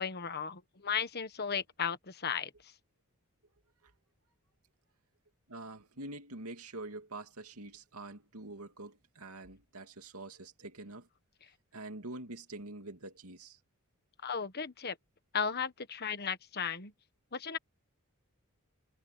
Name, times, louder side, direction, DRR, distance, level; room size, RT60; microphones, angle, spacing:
voice 1, 0.0-2.5 14.2-15.0 15.3-16.9 17.3-17.6, left 6 dB, 45° left, 1.4 m, -35 dB
voice 2, 5.5-11.1 11.7-13.6, right 2 dB, 85° right, 2.5 m, -45 dB
head